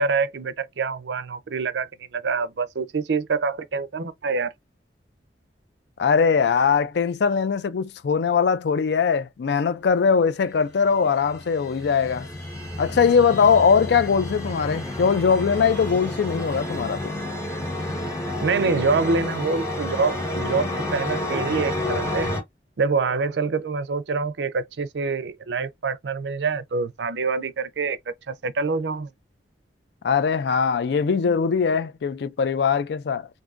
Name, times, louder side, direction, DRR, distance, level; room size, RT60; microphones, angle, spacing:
voice 1, 0.0-4.5 18.4-22.3 22.8-28.0 28.3-29.1, right 4 dB, 70° right, 0.5 m, -26 dB
voice 2, 6.0-12.3 12.8-17.1 30.0-33.3, left 6 dB, 65° left, 0.4 m, -21 dB
sound 1, 10.8-22.4, left 1 dB, 20° left, 1.2 m, -30 dB
3.5 x 2.6 x 2.5 m
head